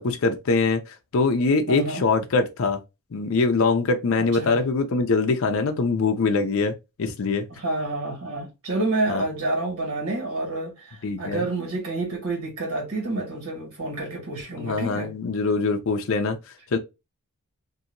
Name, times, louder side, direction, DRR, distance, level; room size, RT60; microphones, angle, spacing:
voice 1, 0.0-2.8 3.1-6.7 7.0-7.4 9.1-9.2 11.0-11.4 14.6-16.4 16.7-16.8, left 4 dB, 60° left, 0.5 m, -23 dB
voice 2, 1.7-2.1 4.2-4.6 7.5-15.1, right 2 dB, 80° right, 1.9 m, -29 dB
2.8 x 2.6 x 2.5 m
head